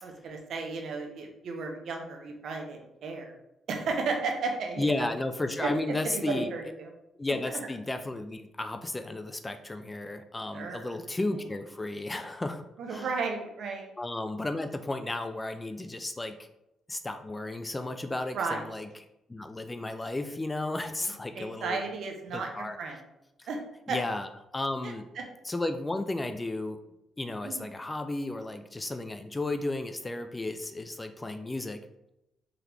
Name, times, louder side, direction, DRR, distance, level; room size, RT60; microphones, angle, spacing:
voice 1, 0.0-3.3 3.7-5.1 5.6-5.7 6.0-6.9 10.5-11.0 12.8-13.9 18.3-18.6 21.3-23.0 23.5-23.6 23.9-24.0 24.8-25.2 27.4-27.6, right 4 dB, 65° right, 2 dB, 0.8 m, -34 dB
voice 2, 4.8-6.5 7.2-12.6 12.9-13.1 14.0-16.5 16.9-18.9 19.3-21.8 22.3-22.8 23.4-23.5 23.9-24.3 24.5-25.0 25.4-26.8 27.2-31.8, left 2 dB, 20° left, 8 dB, 0.3 m, -33 dB
3.8 x 2.9 x 3.3 m, 0.88 s
cardioid pair, 90°, 0 cm